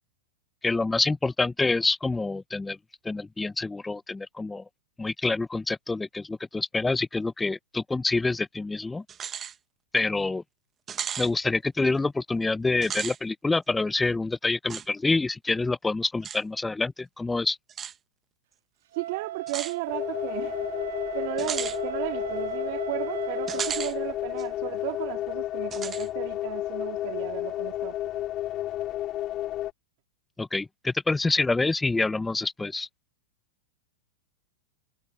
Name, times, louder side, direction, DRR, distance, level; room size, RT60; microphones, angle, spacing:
voice 1, 0.6-2.8 3.0-4.6 5.0-9.0 9.9-10.4 11.2-17.6 30.4-32.9, left 3 dB, 10° left, 1.0 m, -27 dB
sound 1, 9.1-9.5 10.0-10.1 10.9-11.3 12.7-13.2 14.7-14.9 16.2-16.4 17.7-17.9 19.5-19.8 21.4-21.8 23.5-23.9 24.4-24.5 25.7-26.1, right 8 dB, 25° right, 1.4 m, -34 dB
voice 2, 18.9-20.7 21.1-28.2, right 24 dB, 55° right, 2.1 m, -35 dB
Wind instrument woodwind instrument, 18.9-23.9, right 13 dB, 70° right, 3.6 m, -37 dB
sound 2, 19.9-29.7, left 14 dB, 35° left, 4.3 m, -32 dB
hypercardioid pair, 115°, 0 cm